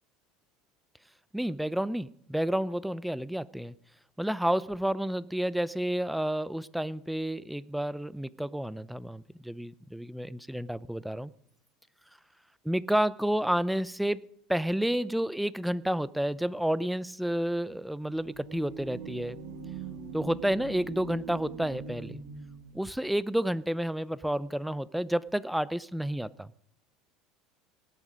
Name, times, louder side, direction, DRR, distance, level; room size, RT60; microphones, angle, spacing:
voice 1, 1.3-3.7 4.2-11.3 12.7-14.2 14.5-19.4 20.1-22.2 22.7-26.5, right 1 dB, 5° right, 19 dB, 0.6 m, -30 dB
sound 1, 18.1-22.9, right 5 dB, 80° right, 2.7 m, -42 dB
18.0 x 11.0 x 5.1 m, 0.70 s
supercardioid pair, 105°, 0 cm